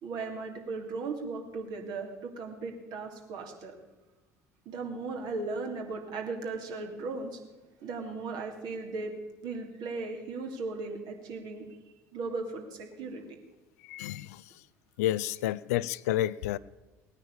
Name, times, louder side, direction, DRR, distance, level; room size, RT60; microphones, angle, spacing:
voice 1, 0.0-3.8 4.6-7.4 7.8-9.1 9.4-11.7 12.1-13.2, right 3 dB, 55° right, 2 dB, 2.9 m, -37 dB
voice 2, 13.9-14.4 15.0-16.6, left 13 dB, 70° left, 19 dB, 0.4 m, -30 dB
18.5 x 9.6 x 7.1 m, 1.1 s
figure-of-eight pair, 60°, 9 cm